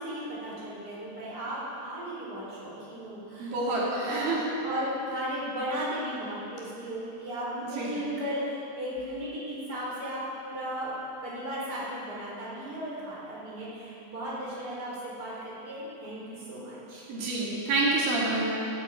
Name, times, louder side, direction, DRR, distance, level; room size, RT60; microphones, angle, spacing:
voice 1, 0.0-4.3 4.6-17.0, equal, 25° right, -7 dB, 5.1 m, -35 dB
voice 2, 3.4-4.6 7.5-7.9 17.1-18.5, right 2 dB, 85° right, -5 dB, 4.4 m, -28 dB
17.0 x 14.5 x 5.4 m, 2.9 s
omnidirectional pair, 4.0 m